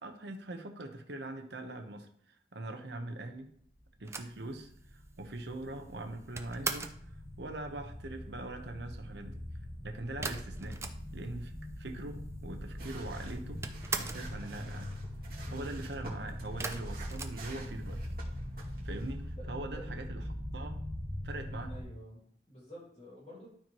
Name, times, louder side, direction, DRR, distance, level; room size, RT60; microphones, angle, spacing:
voice 1, 0.0-2.1 2.5-3.5 4.0-7.0 7.4-9.3 9.8-13.7 14.0-14.9 15.5-18.0 18.8-20.8 21.2-21.8, right 2 dB, 70° right, 6 dB, 0.9 m, -42 dB
Massive Unknown Flying Object, 3.8-21.8, equal, 5° left, 2.4 m, -42 dB
sound 1, 4.1-7.1 10.2-11.4 11.7-11.8 11.9-12.7 13.0-14.4 16.6-18.1, right 4 dB, 15° right, 0.4 m, -40 dB
sound 2, 12.8-19.3, right 2 dB, 55° right, 2.2 m, -49 dB
voice 2, 21.7-23.5, equal, 35° left, -4 dB, 2.6 m, -50 dB
12.5 x 4.6 x 3.0 m, 0.65 s
head